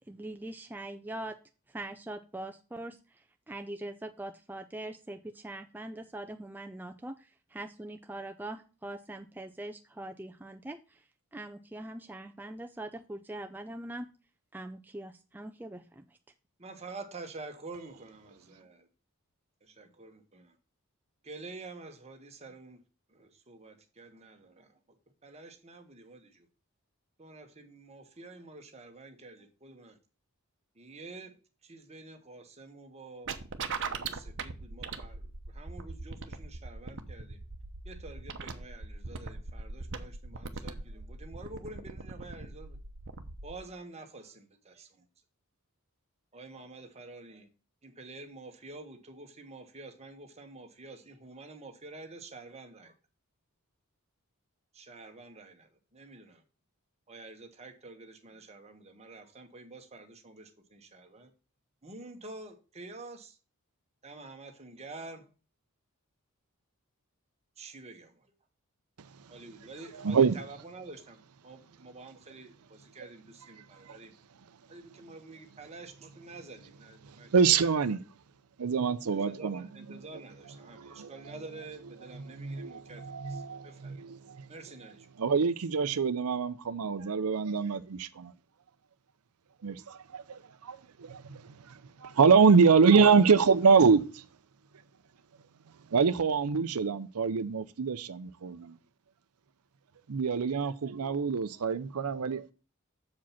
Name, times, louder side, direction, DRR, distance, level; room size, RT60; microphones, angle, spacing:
voice 1, 0.1-1.4 1.7-14.1 14.5-16.1, right 1 dB, 10° right, 0.4 m, -42 dB
voice 2, 16.6-18.9 19.6-20.6 21.2-22.8 23.1-24.8 25.2-26.5 27.2-30.0 30.7-33.4 33.8-37.4 37.8-42.8 43.4-45.0 46.3-47.5 47.8-52.9 54.7-56.4 57.1-61.3 61.8-63.4 64.0-65.3 67.6-68.3 69.3-74.1 74.7-77.6 79.1-84.1 84.5-85.1, right 3 dB, 30° right, 1.4 m, -48 dB
sound 1, 33.3-43.6, right 4 dB, 55° right, 0.9 m, -40 dB
voice 3, 70.0-70.3 73.9-74.0 77.1-78.0 78.6-79.6 80.8-81.1 82.4-84.5 85.2-88.3 89.6-94.2 95.9-98.8 100.1-102.5, right 5 dB, 80° right, 0.6 m, -25 dB
7.2 x 5.1 x 5.7 m
head